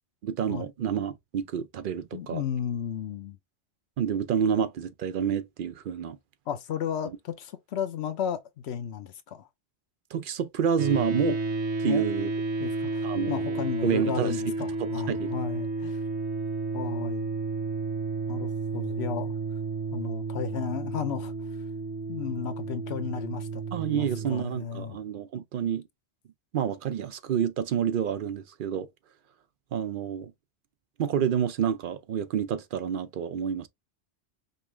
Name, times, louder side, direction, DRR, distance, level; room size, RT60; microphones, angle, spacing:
voice 1, 0.2-2.4 4.0-6.2 10.1-11.4 11.8-12.3 12.8-14.4 14.8-15.3 23.7-25.8 26.5-28.9 29.7-30.3 31.0-33.7, right 8 dB, 60° right, 0.6 m, -29 dB
voice 2, 2.1-3.4 6.5-9.5 11.8-12.0 12.6-16.0 16.7-17.3 18.3-19.3 19.9-21.3 22.1-25.0, left 8 dB, 75° left, 0.9 m, -34 dB
sound 1, 10.8-24.3, right 3 dB, 85° right, 1.0 m, -32 dB
5.4 x 2.4 x 3.1 m
omnidirectional pair, 1.1 m